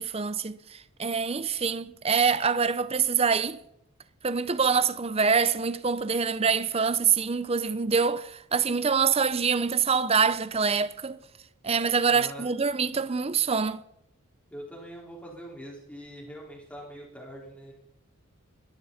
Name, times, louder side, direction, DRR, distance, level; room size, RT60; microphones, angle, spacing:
voice 1, 0.0-3.6 4.2-11.2 11.6-13.8, right 5 dB, 30° right, 0.6 m, -25 dB
voice 2, 12.1-12.5 14.5-17.7, equal, 5° left, 4.6 m, -43 dB
21.0 x 13.0 x 4.2 m
head